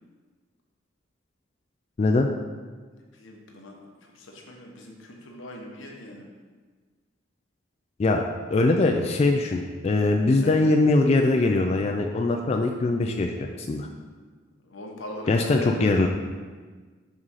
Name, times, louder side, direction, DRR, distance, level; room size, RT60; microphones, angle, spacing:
voice 1, 2.0-2.3 8.0-8.2 8.5-13.9 15.3-16.1, left 2 dB, 35° left, 2 dB, 0.3 m, -22 dB
voice 2, 2.9-6.3 10.3-10.6 14.6-16.0, left 1 dB, 85° left, 1 dB, 0.9 m, -40 dB
4.8 x 3.7 x 5.6 m, 1.4 s
head